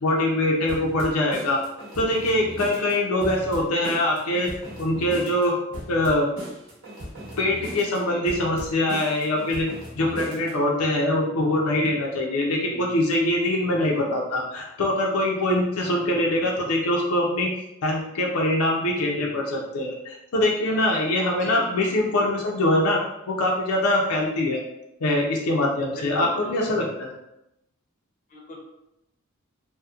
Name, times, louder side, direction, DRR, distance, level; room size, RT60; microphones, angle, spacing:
voice 1, 0.0-1.6 2.0-4.5 4.8-5.5 5.9-6.3 7.4-9.7 10.0-17.5 17.8-23.0 23.3-24.6 25.0-27.1, left 1 dB, 90° left, -1 dB, 0.5 m, -23 dB
sound 1, 0.7-10.6, equal, 70° right, 0.9 m, -38 dB
voice 2, 13.8-14.1 21.4-21.7 26.0-26.5 28.3-28.6, left 2 dB, 40° left, -2 dB, 0.5 m, -39 dB
2.8 x 2.1 x 2.3 m, 0.86 s
head